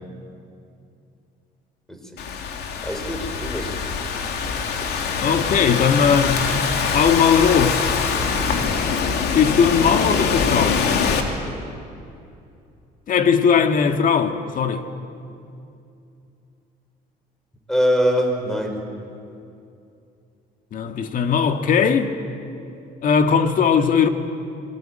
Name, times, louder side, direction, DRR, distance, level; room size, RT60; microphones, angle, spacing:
Thunderstorm / Rain, 2.2-11.2, left 6 dB, 75° left, 2.9 m, -23 dB
voice 1, 2.8-3.8 17.7-18.8, equal, 5° left, 4.6 m, -22 dB
voice 2, 5.2-6.5 6.9-7.8 9.3-10.8 13.1-14.8 20.7-22.1 23.0-24.1, left 6 dB, 55° left, 1.9 m, -18 dB
26.5 x 22.0 x 9.0 m
cardioid pair, 110°, 17 cm